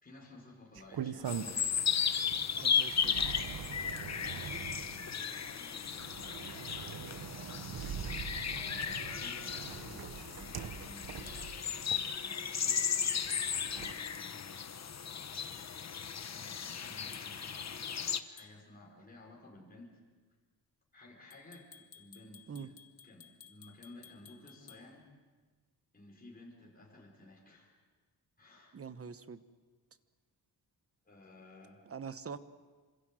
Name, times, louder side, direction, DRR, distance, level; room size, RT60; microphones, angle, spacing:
voice 1, 0.0-1.5 3.8-7.1 8.5-11.7 12.1-14.7 16.2-20.0 20.9-22.8 23.0-25.1 25.9-27.7 28.4-28.8 31.0-31.8, left 2 dB, 20° left, -2 dB, 5.4 m, -55 dB
sound 1, 0.7-1.9 2.3-12.6 13.2-13.9, right 8 dB, 60° right, 1.3 m, -43 dB
sound 2, 1.3-18.2, left 7 dB, 40° left, 1.1 m, -35 dB
voice 2, 2.6-3.2 22.5-22.7 28.7-29.4 31.9-32.4, right 6 dB, 35° right, 12 dB, 1.1 m, -44 dB
sound 3, 15.5-15.7 18.4-18.6 21.3-24.9, left 8 dB, 60° left, 2.3 m, -57 dB
27.5 x 26.5 x 7.7 m, 1.4 s
wide cardioid pair, 145°, 40 cm